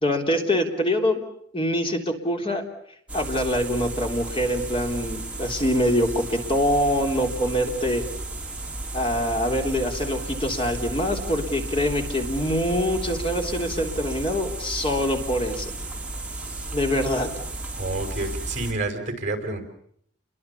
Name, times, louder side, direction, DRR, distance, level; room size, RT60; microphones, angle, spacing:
voice 1, 0.0-1.2 1.5-2.6 3.1-8.0 8.9-15.7 16.7-17.3, equal, 30° left, 3 dB, 3.6 m, -24 dB
sound 1, 3.1-18.7, right 2 dB, 5° right, 5.9 m, -33 dB
voice 2, 17.7-19.6, right 2 dB, 40° right, 5 dB, 5.5 m, -29 dB
30.0 x 23.0 x 7.1 m, 0.67 s
head